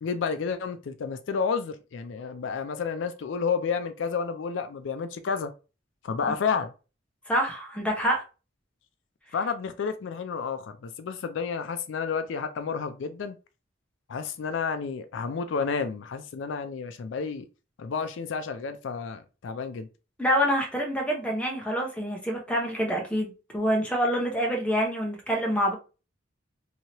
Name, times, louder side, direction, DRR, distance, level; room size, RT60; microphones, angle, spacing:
voice 1, 0.0-5.5 6.0-6.7 9.3-13.4 14.1-17.5 17.8-19.9, left 5 dB, 75° left, 0.4 m, -30 dB
voice 2, 7.3-8.2 20.2-25.7, equal, 5° left, 0.8 m, -26 dB
3.0 x 2.7 x 2.9 m
head